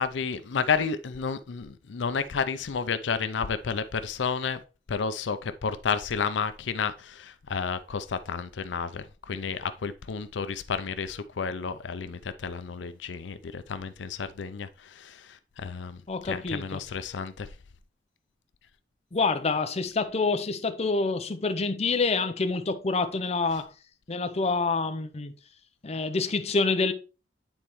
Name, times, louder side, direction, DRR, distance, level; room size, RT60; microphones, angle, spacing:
voice 1, 0.0-4.6 4.9-17.5, left 5 dB, 85° left, 0.5 m, -31 dB
voice 2, 16.1-16.8 19.1-23.7 24.1-25.3 25.8-26.9, left 3 dB, 35° left, 0.6 m, -27 dB
9.0 x 4.3 x 3.1 m
head